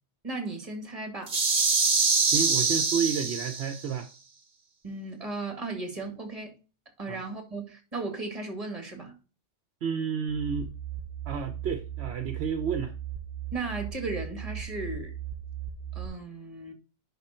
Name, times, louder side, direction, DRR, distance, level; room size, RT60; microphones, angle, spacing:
voice 1, 0.2-1.4 4.8-6.6 7.0-9.2 13.5-15.1 15.9-16.7, right 3 dB, 30° right, 2.2 m, -36 dB
sound 1, 1.3-3.8, right 4 dB, 45° right, 1.3 m, -24 dB
voice 2, 2.1-4.1 7.1-7.2 9.8-10.7 11.3-12.9, right 6 dB, 65° right, 1.0 m, -30 dB
sound 2, 10.3-16.1, right 10 dB, 15° left, 0.6 m, -38 dB
10.5 x 3.7 x 4.4 m
omnidirectional pair, 1.2 m